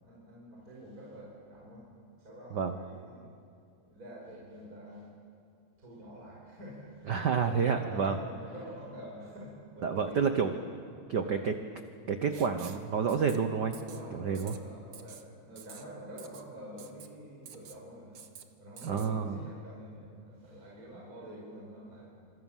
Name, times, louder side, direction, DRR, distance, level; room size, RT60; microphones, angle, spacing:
voice 1, 0.0-1.9 2.1-3.3 3.8-5.1 5.8-10.3 11.2-11.4 13.8-18.2 18.6-22.1, equal, 30° right, -4 dB, 5.5 m, -47 dB
voice 2, 7.1-8.2 9.8-10.6 11.1-11.5 12.1-13.7 14.1-14.5 18.8-19.4, right 6 dB, 70° right, 7 dB, 1.0 m, -29 dB
Writing, 12.3-12.8 13.1-13.4 13.7-14.0 14.3-14.6 14.9-15.2 15.6-15.8 16.2-16.4 16.8-17.1 17.5-17.8 18.1-18.4 18.8-19.1, right 8 dB, 55° right, 1.3 m, -49 dB
27.5 x 26.5 x 7.4 m, 2.4 s
omnidirectional pair, 3.4 m